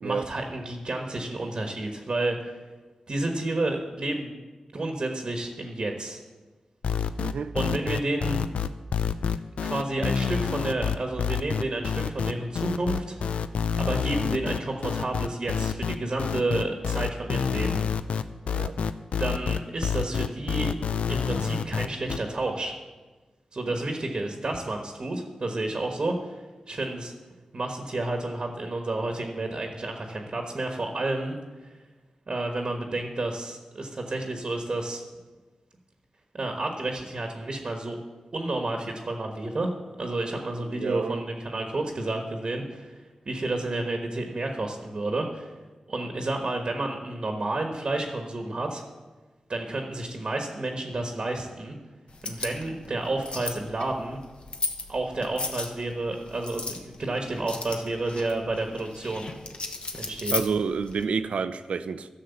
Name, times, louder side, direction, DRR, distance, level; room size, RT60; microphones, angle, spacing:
voice 1, 0.0-2.6 3.1-4.4 4.7-6.2 7.5-8.4 9.6-13.2 13.8-17.8 19.2-20.7 21.1-22.8 23.5-27.1 27.5-31.3 31.6-31.7 32.3-35.0 36.3-38.0 38.3-39.7 40.0-43.0 43.3-45.5 45.9-48.8 49.5-51.8 52.2-54.2 54.9-59.3 60.0-60.3, right 2 dB, 50° right, 3 dB, 1.3 m, -30 dB
sound 1, 6.8-22.2, left 7 dB, 90° left, 0.4 m, -27 dB
voice 2, 7.2-7.5 18.5-18.8 40.7-41.2 60.3-62.1, right 5 dB, 85° right, 12 dB, 0.5 m, -29 dB
sound 2, 52.1-61.0, left 3 dB, 60° left, 1.1 m, -36 dB
11.5 x 6.3 x 7.0 m, 1.3 s
cardioid pair, 65°, 2 cm